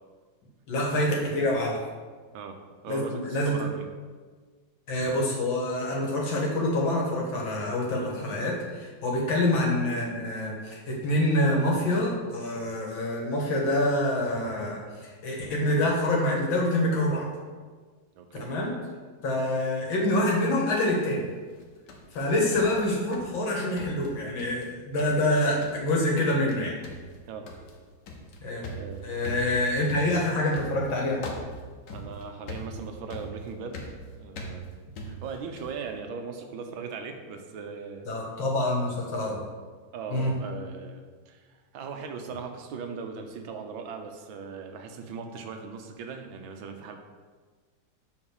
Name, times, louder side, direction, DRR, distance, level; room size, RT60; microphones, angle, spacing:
voice 1, 0.7-1.8 2.9-3.6 4.9-17.3 18.4-18.7 19.2-21.3 22.1-26.8 28.4-28.6 29.0-31.2 38.1-39.4 40.1-40.3, left 1 dB, 85° left, -2 dB, 2.3 m, -26 dB
voice 2, 2.8-3.9 9.4-9.5 18.1-18.5 27.3-27.5 28.8-29.2 31.9-33.9 34.1-34.7 35.1-38.0 39.9-47.0, right 5 dB, 90° right, 5 dB, 1.6 m, -39 dB
sound 1, 21.5-23.5 23.8-24.7 25.0-25.3 25.6-26.0 26.2-26.6 26.8-35.8, equal, 65° left, 1.6 m, -41 dB
7.7 x 4.0 x 6.3 m, 1.5 s
omnidirectional pair, 2.1 m